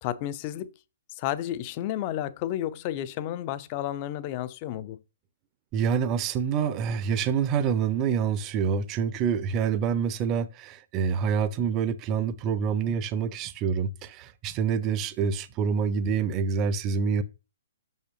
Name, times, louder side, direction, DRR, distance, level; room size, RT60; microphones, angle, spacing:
voice 1, 0.0-0.7 1.1-5.0, left 12 dB, 30° left, 0.4 m, -32 dB
voice 2, 5.7-17.2, right 6 dB, 25° right, 0.5 m, -27 dB
6.0 x 5.5 x 3.0 m
figure-of-eight pair, 120°, 0 cm